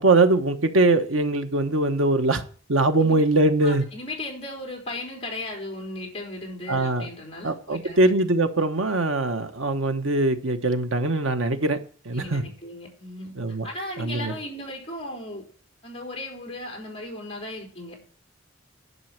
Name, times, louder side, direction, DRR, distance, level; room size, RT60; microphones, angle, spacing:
voice 1, 0.0-2.4 2.7-3.8 6.7-7.1 7.4-11.8 12.0-12.4 13.4-13.7 14.0-14.3, right 2 dB, 85° right, 1.2 m, -22 dB
voice 2, 3.6-8.1 12.1-13.3 13.6-15.5 15.8-18.0, left 1 dB, 30° left, 3.9 m, -36 dB
11.0 x 5.5 x 7.5 m
head